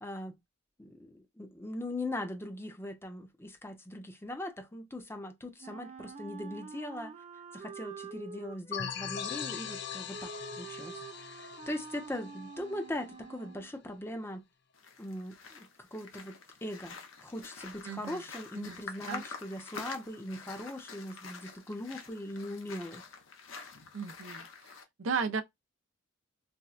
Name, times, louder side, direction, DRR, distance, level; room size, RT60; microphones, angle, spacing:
voice 1, 0.0-0.4 0.8-7.1 7.5-14.4 15.0-23.0, left 1 dB, 10° left, 0.7 m, -40 dB
Wind instrument woodwind instrument, 5.6-13.7, right 4 dB, 35° right, 0.5 m, -47 dB
sound 1, 8.7-13.2, left 8 dB, 55° left, 0.5 m, -41 dB
sound 2, 14.7-24.8, left 5 dB, 80° left, 0.9 m, -47 dB
voice 2, 17.9-18.2 18.6-18.8 19.1-19.2 23.9-24.5 25.0-25.4, right 5 dB, 80° right, 0.6 m, -34 dB
4.2 x 2.2 x 2.4 m
head